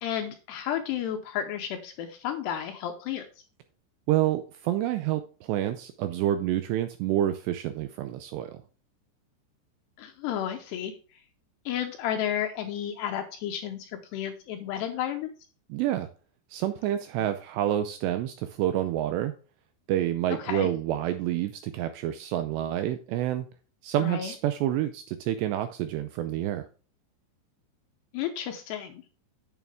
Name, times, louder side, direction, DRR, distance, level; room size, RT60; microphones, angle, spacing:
voice 1, 0.0-3.3 10.0-11.2 11.7-15.3 20.4-20.7 24.0-24.3 28.1-29.0, left 10 dB, 80° left, 5 dB, 2.5 m, -32 dB
voice 2, 4.1-8.5 15.7-16.1 16.5-19.3 19.9-23.5 23.8-26.7, right 12 dB, 85° right, 9 dB, 2.5 m, -28 dB
8.4 x 7.1 x 3.5 m, 0.36 s
omnidirectional pair, 5.4 m